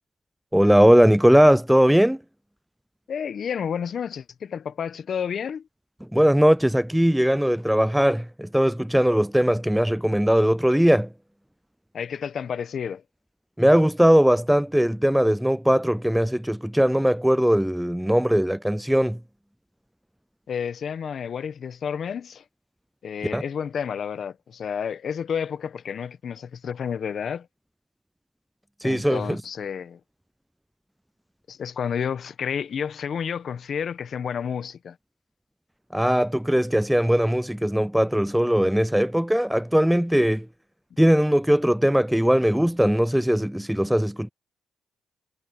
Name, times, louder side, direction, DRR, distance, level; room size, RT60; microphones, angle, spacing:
voice 1, 0.5-2.2 6.1-11.1 13.6-19.2 23.3-23.4 28.8-29.4 35.9-40.5 41.0-44.3, equal, 5° right, 0.4 m, -20 dB
voice 2, 3.1-5.7 11.9-13.0 20.5-22.4 23.0-27.5 28.8-30.0 31.5-35.0, left 7 dB, 55° left, 1.1 m, -30 dB
cardioid pair, 90°, 0 cm